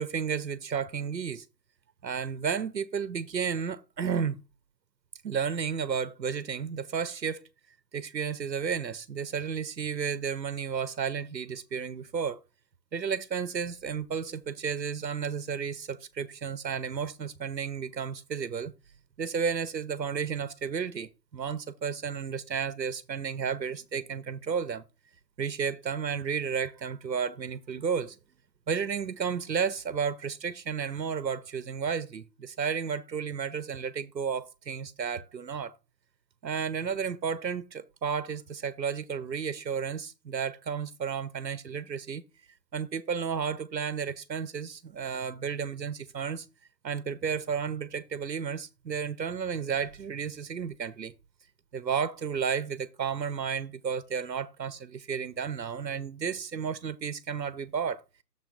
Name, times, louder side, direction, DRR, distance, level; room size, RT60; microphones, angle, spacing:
voice 1, 0.0-1.4 2.0-4.4 5.2-7.4 7.9-12.4 12.9-18.7 19.2-24.8 25.4-28.2 28.7-35.7 36.4-42.2 42.7-46.5 46.8-51.1 51.7-58.0, right 6 dB, 90° right, 0.8 m, -32 dB
6.9 x 3.6 x 6.3 m
figure-of-eight pair, 150°, 50 cm